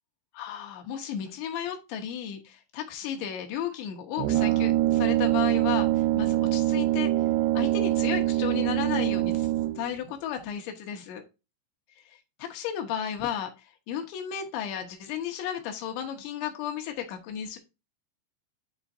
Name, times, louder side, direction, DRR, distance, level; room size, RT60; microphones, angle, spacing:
voice 1, 0.3-7.3 7.5-9.5 9.8-11.3 12.0-17.6, left 9 dB, 75° left, 2.9 m, -34 dB
Brass instrument, 4.2-9.9, right 15 dB, 85° right, 3.0 m, -24 dB
9.7 x 3.7 x 2.6 m
omnidirectional pair, 5.5 m